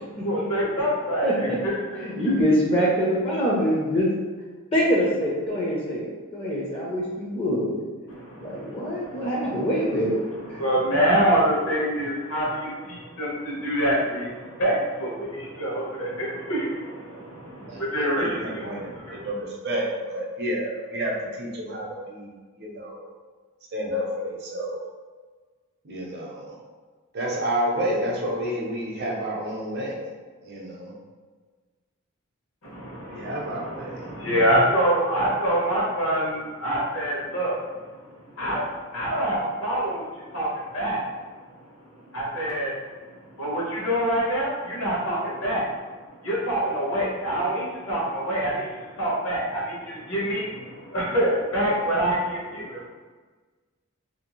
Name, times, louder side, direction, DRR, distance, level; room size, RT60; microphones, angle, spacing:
voice 1, 0.2-2.3 8.1-9.6 10.5-19.3 32.7-37.6 38.3-38.6 38.9-40.1 40.3-41.0 42.1-42.8 43.4-45.6 46.2-52.9, right 1 dB, 75° left, -5 dB, 0.9 m, -26 dB
voice 2, 1.2-1.6 2.0-4.1 4.7-7.9 8.4-10.2 10.5-10.6 10.9-11.0, equal, 25° left, -4 dB, 0.4 m, -24 dB
voice 3, 18.2-23.1 23.7-24.8 25.8-26.6 27.1-30.1 30.4-30.9 33.1-34.0, right 1 dB, 50° right, -2 dB, 0.6 m, -30 dB
2.6 x 2.3 x 2.9 m, 1.4 s
head